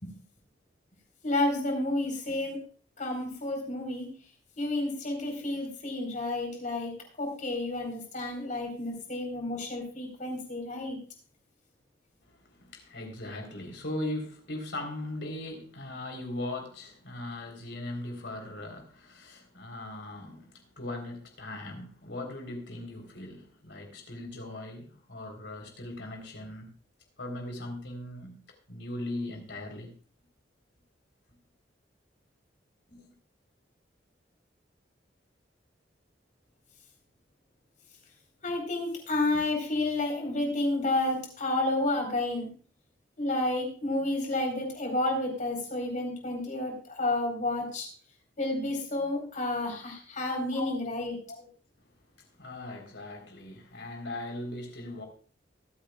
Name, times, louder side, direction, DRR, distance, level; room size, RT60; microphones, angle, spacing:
voice 1, 1.2-2.6 3.0-4.1 4.6-6.9 7.2-11.0 38.4-42.5 43.2-47.9 48.4-51.2, left 2 dB, 45° left, 4.4 m, -30 dB
voice 2, 12.2-26.7 27.2-28.4 28.7-29.9 32.9-33.0 50.5-50.7 51.3-51.5 52.2-55.0, left 1 dB, 70° left, 3.8 m, -39 dB
23.5 x 8.6 x 2.4 m
head